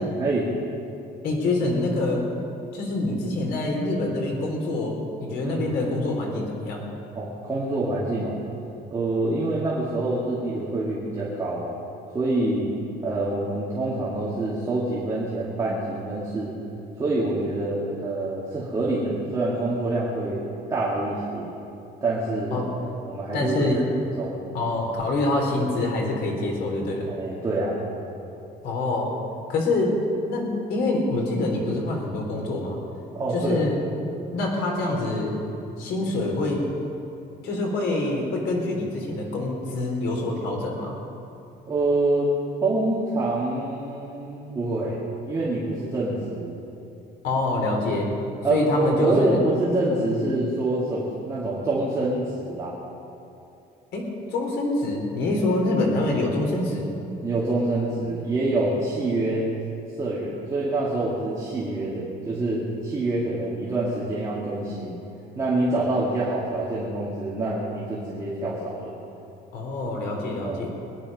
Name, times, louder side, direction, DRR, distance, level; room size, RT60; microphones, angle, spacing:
voice 1, 1.2-2.2 2.7-6.9 22.5-22.7 23.3-23.9 24.5-27.1 28.6-29.1 29.5-29.9 30.3-32.8 33.3-33.8 34.3-35.4 35.8-36.6 37.4-41.0 47.2-48.1 48.5-49.4 53.9-56.9 69.5-70.7, left 2 dB, 70° left, 0 dB, 3.4 m, -25 dB
voice 2, 7.2-8.4 8.9-11.7 12.1-12.7 13.0-16.5 17.0-20.4 20.7-21.5 22.0-22.6 23.0-23.8 24.2-24.4 27.1-27.8 33.1-33.6 35.7-35.8 41.7-42.3 42.6-45.0 45.3-46.6 48.4-52.8 57.2-59.5 60.0-65.0 65.4-68.9 70.4-70.7, right 2 dB, 20° right, -8 dB, 2.3 m, -26 dB
23.5 x 10.0 x 5.4 m, 2.7 s
cardioid pair, 175°, 17 cm